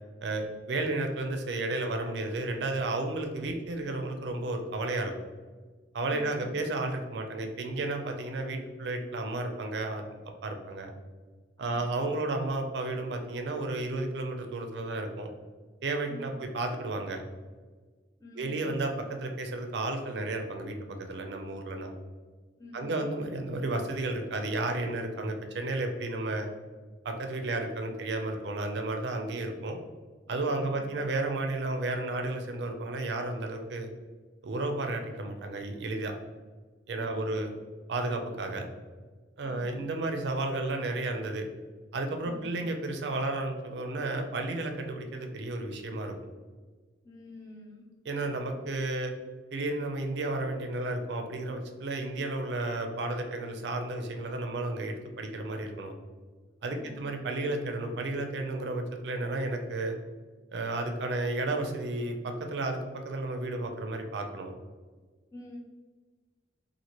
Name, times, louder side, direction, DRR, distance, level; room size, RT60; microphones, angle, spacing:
voice 1, 0.2-5.1 5.9-10.1 10.4-10.9 11.6-15.3 15.8-17.2 18.4-21.9 22.7-26.5 27.0-29.8 30.3-33.9 34.4-36.1 36.9-37.5 37.9-38.7 39.4-41.4 41.9-46.1 48.1-49.1 49.5-55.9 56.6-60.0 60.5-64.5, right 2 dB, 70° right, 4 dB, 0.4 m, -32 dB
voice 2, 6.1-6.7 11.6-12.0 16.1-16.4 18.2-18.7 22.6-23.2 30.5-31.0 37.0-37.5 39.4-39.8 42.2-42.7 47.0-47.8 56.6-57.1 65.3-65.6, left 1 dB, 20° left, -2 dB, 0.5 m, -48 dB
2.8 x 2.5 x 2.9 m, 1.4 s
head